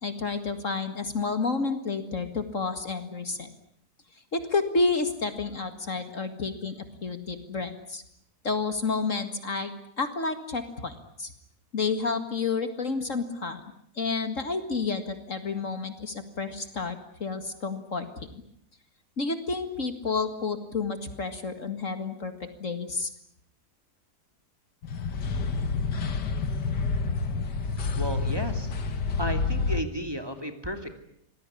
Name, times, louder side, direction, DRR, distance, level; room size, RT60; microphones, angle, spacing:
voice 1, 0.0-3.5 4.3-8.0 8.4-11.3 11.7-13.6 14.0-18.4 19.2-23.1, left 4 dB, 50° left, 9 dB, 2.3 m, -30 dB
sound 1, 24.8-29.8, left 4 dB, 85° left, 2.2 m, -28 dB
voice 2, 27.9-28.7 29.2-30.9, equal, 15° right, 6 dB, 2.7 m, -33 dB
26.0 x 20.0 x 10.0 m, 0.72 s
omnidirectional pair, 1.8 m